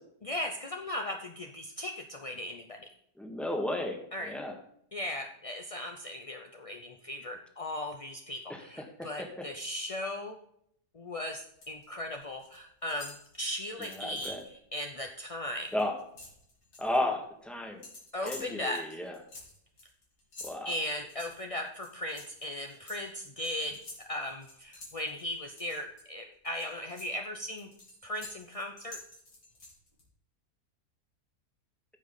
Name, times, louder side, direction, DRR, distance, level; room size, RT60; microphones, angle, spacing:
voice 1, 0.2-2.8 4.1-4.3 4.9-10.4 10.9-15.7 18.1-19.0 20.6-23.8 24.1-27.7 28.0-29.0, left 1 dB, 40° left, 3 dB, 0.5 m, -37 dB
voice 2, 3.2-4.5 8.5-9.5 13.8-14.4 15.7-15.9 16.8-17.8 18.2-19.2 20.4-20.7, left 1 dB, ahead, 3 dB, 1.3 m, -34 dB
sound 1, 11.2-11.8 12.1-12.6 12.9-14.5 14.9-15.1 15.4-17.0 17.8-26.0 26.4-30.0, left 2 dB, 90° left, 3.5 m, -50 dB
15.0 x 5.3 x 4.0 m, 0.71 s
omnidirectional pair, 1.7 m